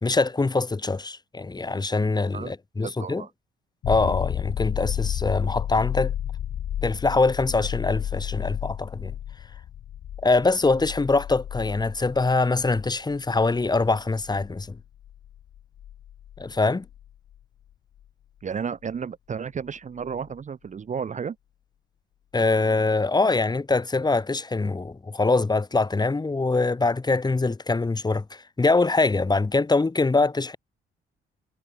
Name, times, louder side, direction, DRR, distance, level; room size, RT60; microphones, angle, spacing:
voice 1, 0.0-3.3 3.9-6.1 6.8-9.1 10.2-14.8 16.4-16.9 22.3-30.6, left 3 dB, 20° left, 2.0 m, -23 dB
voice 2, 2.3-3.3 18.4-21.4, right 6 dB, 40° right, 0.9 m, -33 dB
sound 1, 3.8-17.3 20.1-20.2, left 11 dB, 60° left, 1.0 m, -33 dB
cardioid pair, 90°, 20 cm